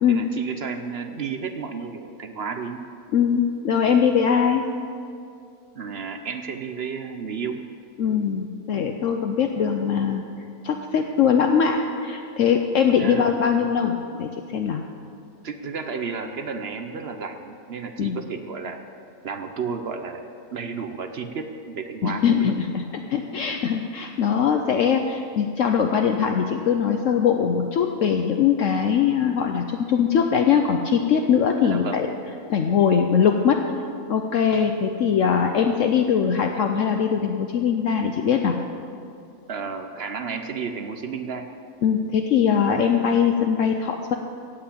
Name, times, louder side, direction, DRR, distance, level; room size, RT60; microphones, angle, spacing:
voice 1, 0.1-2.8 5.7-7.7 13.0-13.2 15.4-18.8 19.2-22.5 31.6-32.1 39.5-41.5, right 5 dB, 55° right, 7 dB, 0.8 m, -32 dB
voice 2, 3.1-4.7 8.0-10.2 10.6-14.8 18.0-18.2 22.0-22.8 23.1-32.1 32.5-33.6 34.1-38.6 41.8-44.1, left 7 dB, 65° left, 4 dB, 1.0 m, -21 dB
15.5 x 5.9 x 8.5 m, 2.5 s
omnidirectional pair, 1.6 m